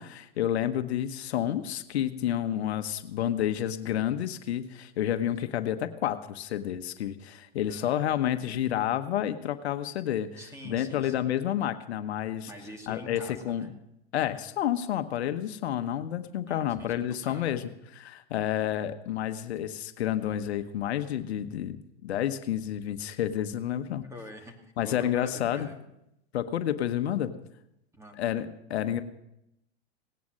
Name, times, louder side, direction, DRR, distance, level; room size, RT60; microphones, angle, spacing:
voice 1, 0.0-12.5 12.9-13.7 14.1-24.1 24.8-25.7 26.3-27.3 28.2-29.0, left 11 dB, 75° left, 10 dB, 1.1 m, -30 dB
voice 2, 7.7-8.1 10.4-11.3 12.5-13.7 16.5-17.6 24.1-25.8 27.9-28.3, equal, 10° right, 3 dB, 2.5 m, -46 dB
18.0 x 9.5 x 6.4 m, 0.84 s
hypercardioid pair, 125°, 32 cm